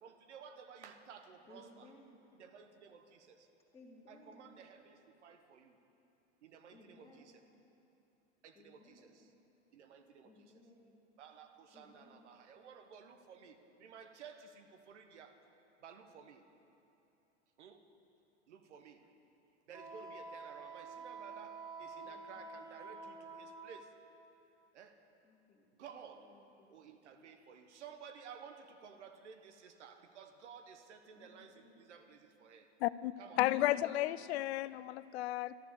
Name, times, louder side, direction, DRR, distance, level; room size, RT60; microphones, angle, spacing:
voice 1, 0.0-1.8 2.4-3.5 4.1-5.8 6.4-7.3 8.4-9.3 9.7-10.3 11.2-15.4 15.8-16.4 17.6-17.8 18.5-19.0 19.7-23.9 24.7-25.0 25.8-26.2 26.7-32.7 33.2-33.6, right 6 dB, 75° right, 6 dB, 1.2 m, -55 dB
voice 2, 1.5-2.2 3.7-4.6 6.7-7.4 8.5-9.2 10.2-10.9 11.7-12.3 22.0-22.7 25.2-26.7 31.1-31.9 33.6-34.4, left 2 dB, 15° left, -3 dB, 2.2 m, -60 dB
Wind instrument woodwind instrument, 19.7-23.9, right 4 dB, 10° right, 1.2 m, -48 dB
voice 3, 32.8-35.6, left 15 dB, 65° left, 17 dB, 0.5 m, -33 dB
13.0 x 11.0 x 6.9 m, 2.8 s
hypercardioid pair, 100°, 35 cm